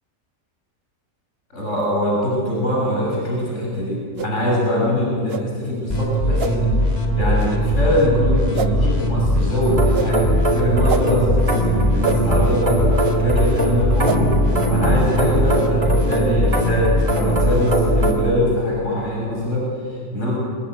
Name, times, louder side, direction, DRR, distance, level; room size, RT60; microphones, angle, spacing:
voice 1, 1.5-14.4 14.7-20.3, left 1 dB, 60° left, -4 dB, 7.6 m, -23 dB
sound 1, 4.1-4.3 5.3-5.4 6.4-6.5 7.4-7.5 8.5-8.7 9.9-10.1 10.9-11.0 12.0-12.2 13.0-13.1 14.0-14.2, right 6 dB, 50° right, 1.3 m, -25 dB
sound 2, 5.9-18.1, equal, 30° left, 3.1 m, -20 dB
sound 3, 9.6-18.3, right 2 dB, 25° right, 4.1 m, -23 dB
25.5 x 21.0 x 9.2 m, 2.2 s
omnidirectional pair, 1.4 m